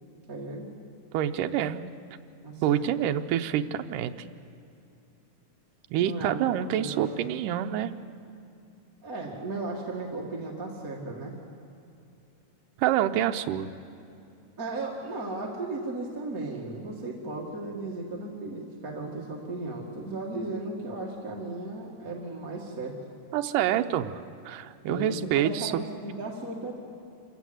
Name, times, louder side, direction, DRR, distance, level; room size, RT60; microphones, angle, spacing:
voice 1, 0.3-0.7 2.4-3.1 6.0-7.4 9.0-11.3 14.6-23.0 24.9-26.7, right 2 dB, 30° right, -2 dB, 1.9 m, -36 dB
voice 2, 1.1-1.9 2.6-4.1 5.9-7.9 12.8-13.7 23.3-25.7, right 11 dB, 80° right, 7 dB, 2.2 m, -27 dB
27.0 x 16.0 x 7.9 m, 2.6 s
omnidirectional pair, 3.9 m